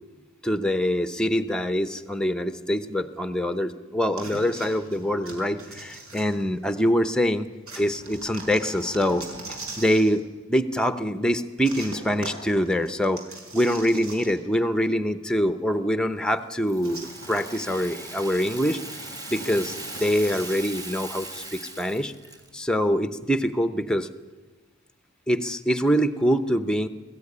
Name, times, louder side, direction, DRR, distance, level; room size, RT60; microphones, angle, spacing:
voice 1, 0.4-7.5 7.8-9.2 9.8-10.2 10.5-13.2 13.5-18.8 19.3-22.1 22.5-24.1 25.3-26.9, equal, 5° left, 10 dB, 0.8 m, -24 dB
sound 1, 4.2-6.9 7.7-10.2 11.6-14.6 14.9-15.0 16.8-20.6, right 2 dB, 70° right, 4.9 m, -41 dB
Rattle (instrument), 16.6-22.6, right 2 dB, 15° right, 2.7 m, -39 dB
23.5 x 14.5 x 9.8 m, 1.3 s
head